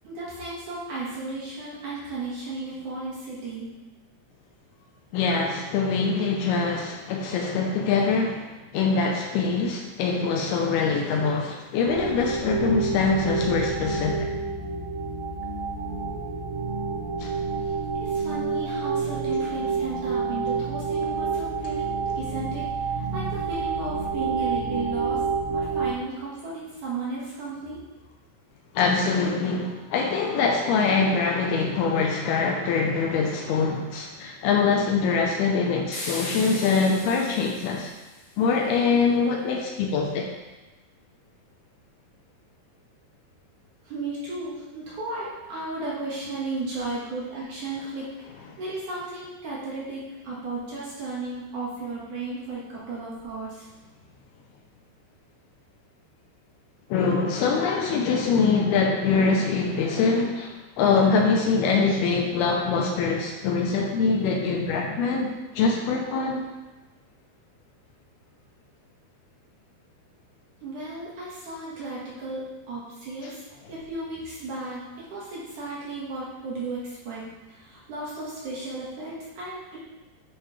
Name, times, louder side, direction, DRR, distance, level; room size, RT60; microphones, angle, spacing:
voice 1, 0.0-3.7 17.6-17.7 18.0-25.2 25.5-27.8 43.8-48.1 48.6-53.7 70.6-79.8, right 2 dB, 55° right, -6 dB, 2.6 m, -34 dB
voice 2, 5.1-14.3 17.2-17.3 28.7-37.9 38.4-40.3 56.9-66.4, left 4 dB, 80° left, 1 dB, 2.5 m, -24 dB
sound 1, 11.8-25.9, right 4 dB, 85° right, 3.2 m, -28 dB
sound 2, 35.9-38.3, left 1 dB, 45° left, 1.6 m, -37 dB
10.5 x 6.3 x 3.2 m, 1.1 s
omnidirectional pair, 4.9 m